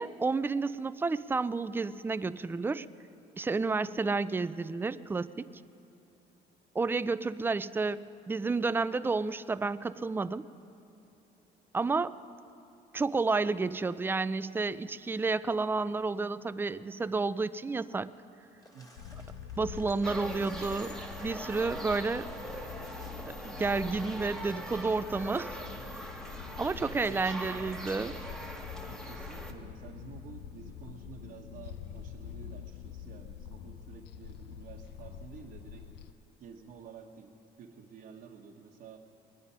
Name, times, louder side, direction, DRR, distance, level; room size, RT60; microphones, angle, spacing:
voice 1, 0.0-2.9 3.4-5.5 6.7-8.0 8.3-10.5 11.7-12.2 12.9-18.1 19.6-22.3 23.4-25.6 26.6-28.2, right 3 dB, 15° right, 14 dB, 0.3 m, -31 dB
sound 1, 18.6-24.6, left 1 dB, 20° left, 1.9 m, -57 dB
sound 2, 19.0-36.1, left 9 dB, 85° left, 0.5 m, -46 dB
sound 3, 20.0-29.5, right 1 dB, 5° left, 1.2 m, -42 dB
voice 2, 26.8-27.7 28.8-35.9 36.4-39.0, right 6 dB, 60° right, -1 dB, 1.1 m, -51 dB
21.5 x 9.6 x 5.5 m, 2.9 s
cardioid pair, 110°, 17 cm